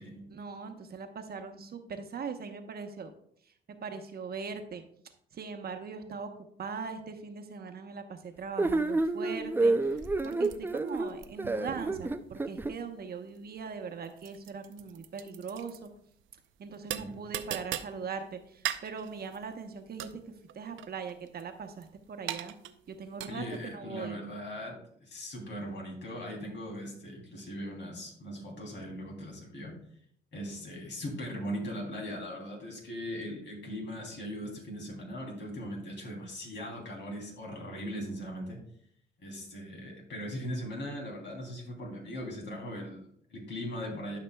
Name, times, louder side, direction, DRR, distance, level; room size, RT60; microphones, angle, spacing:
voice 1, 0.3-3.1 3.5-3.6 3.8-4.8 5.3-6.3 6.6-10.0 10.2-15.9 16.6-22.5 22.9-23.4 23.7-24.2, right 5 dB, 50° right, 6 dB, 1.0 m, -40 dB
sound 1, 8.6-12.7, right 2 dB, 10° right, 0.4 m, -29 dB
sound 2, 8.7-23.7, right 11 dB, 75° right, 0.5 m, -42 dB
voice 2, 23.3-24.7 25.0-29.7 30.3-38.6 39.2-44.2, equal, 65° left, 0 dB, 3.1 m, -39 dB
12.0 x 5.9 x 2.3 m, 0.66 s
cardioid pair, 90°, 20 cm